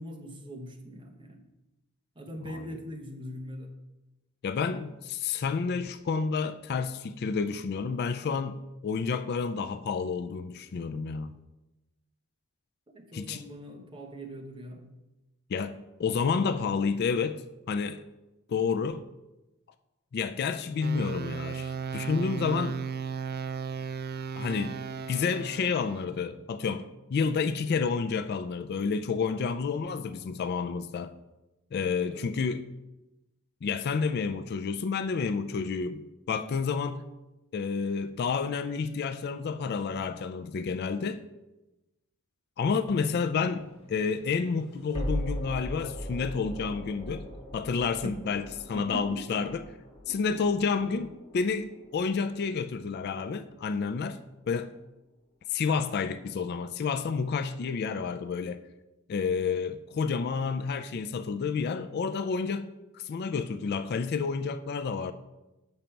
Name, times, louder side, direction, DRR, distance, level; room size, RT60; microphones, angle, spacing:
voice 1, 0.0-1.4 2.2-3.7 12.9-14.9 32.1-32.3 48.0-48.2 48.7-49.4, equal, 20° right, 0.9 m, -41 dB
voice 2, 4.4-11.3 13.1-13.4 15.5-17.4 17.7-18.0 18.5-19.0 20.1-22.8 24.4-24.8 25.1-31.1 31.7-32.6 33.6-37.0 37.5-41.2 42.6-47.3 47.5-49.6 50.1-54.2 54.5-54.7 55.5-58.6 59.1-65.1, left 5 dB, 50° left, 0.3 m, -30 dB
sound 1, 20.8-26.0, right 6 dB, 45° right, 0.4 m, -35 dB
sound 2, 43.1-54.1, equal, 30° left, 1.8 m, -40 dB
7.4 x 5.2 x 4.4 m
head